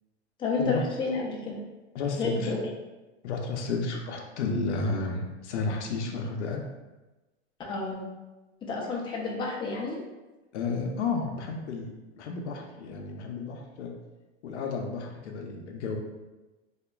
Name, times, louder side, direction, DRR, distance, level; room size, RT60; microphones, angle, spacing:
voice 1, 0.4-1.6 2.2-2.6 7.7-8.0 8.6-10.0, left 4 dB, 15° left, -2 dB, 0.4 m, -30 dB
voice 2, 1.9-2.5 3.2-6.6 10.5-11.9 12.2-13.9 14.4-16.0, left 4 dB, 80° left, 2 dB, 0.6 m, -32 dB
2.9 x 2.5 x 2.2 m, 1.1 s
hypercardioid pair, 110°, 35 cm